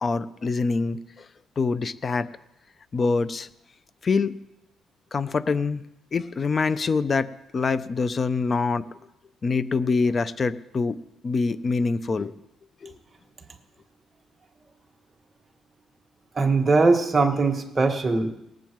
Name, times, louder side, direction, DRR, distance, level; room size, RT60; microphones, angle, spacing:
voice 1, 0.0-1.0 1.6-2.3 2.9-3.5 4.0-4.3 5.1-5.8 6.1-8.9 9.4-11.0 11.2-12.3 12.8-12.9, left 4 dB, 40° left, 15 dB, 0.6 m, -25 dB
voice 2, 16.4-18.4, right 3 dB, 30° right, 4 dB, 1.5 m, -21 dB
19.5 x 7.3 x 4.6 m, 0.87 s
cardioid pair, 90°, 0 cm